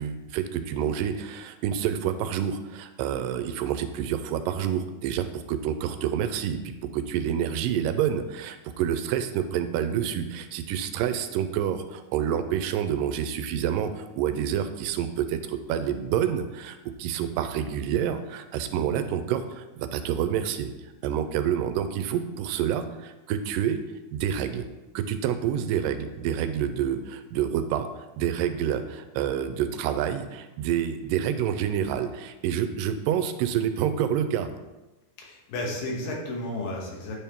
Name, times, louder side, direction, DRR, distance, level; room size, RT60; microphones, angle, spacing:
voice 1, 0.0-20.7 21.0-23.8 24.1-24.6 25.0-34.5, right 9 dB, 85° right, 9 dB, 2.2 m, -28 dB
voice 2, 35.2-37.2, left 1 dB, 85° left, -2 dB, 3.0 m, -32 dB
8.8 x 3.6 x 4.4 m, 1.1 s
omnidirectional pair, 3.8 m